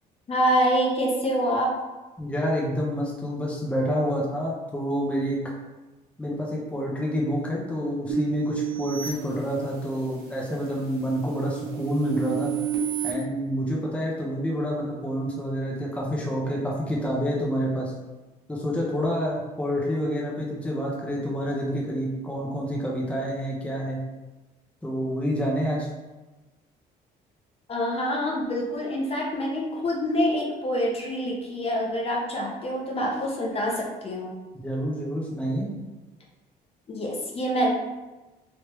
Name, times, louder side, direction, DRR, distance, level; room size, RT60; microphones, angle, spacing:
voice 1, 0.3-1.7 27.7-34.4 36.9-37.7, equal, 35° left, -2 dB, 0.8 m, -26 dB
voice 2, 2.2-5.4 6.2-12.5 13.0-17.9 18.5-24.0 24.8-25.9 34.5-35.7, equal, 5° left, -4 dB, 0.7 m, -28 dB
sound 1, 8.1-10.1 10.6-13.1, right 9 dB, 70° right, 0.9 m, -31 dB
3.1 x 3.1 x 3.0 m, 1.1 s
cardioid pair, 110°, 17 cm